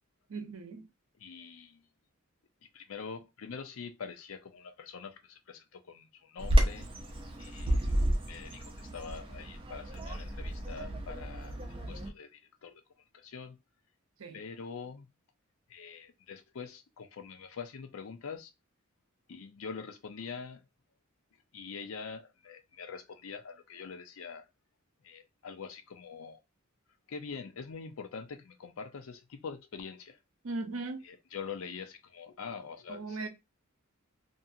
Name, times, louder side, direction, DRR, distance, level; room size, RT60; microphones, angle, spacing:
voice 1, 0.3-0.8 14.2-14.4 30.4-31.0 32.9-33.3, right 3 dB, 70° right, 0.7 m, -38 dB
voice 2, 1.2-1.9 2.7-6.9 7.4-7.9 8.3-11.6 11.9-12.8 13.1-13.6 14.3-15.1 15.7-18.5 19.3-20.6 21.5-24.5 25.0-26.4 27.1-30.2 31.0-33.3, left 5 dB, 70° left, 0.5 m, -44 dB
Bird vocalization bird call bird song, 6.4-12.1, right 1 dB, 25° right, 0.6 m, -31 dB
2.6 x 2.4 x 2.6 m
head